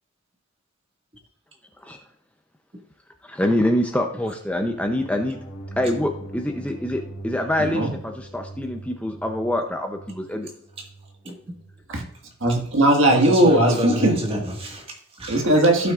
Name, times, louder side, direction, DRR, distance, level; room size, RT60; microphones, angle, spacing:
voice 1, 3.2-5.4 5.8-10.5, left 1 dB, 5° left, 3 dB, 0.7 m, -25 dB
sound 1, 4.5-11.8, right 2 dB, 45° left, 1.8 m, -41 dB
voice 2, 7.6-7.9 11.9-12.0 12.4-14.2 15.3-15.9, right 1 dB, 60° right, 2 dB, 1.8 m, -18 dB
voice 3, 13.1-15.4 15.8-15.9, equal, 25° right, 0 dB, 1.8 m, -28 dB
16.0 x 5.9 x 2.5 m, 0.66 s
head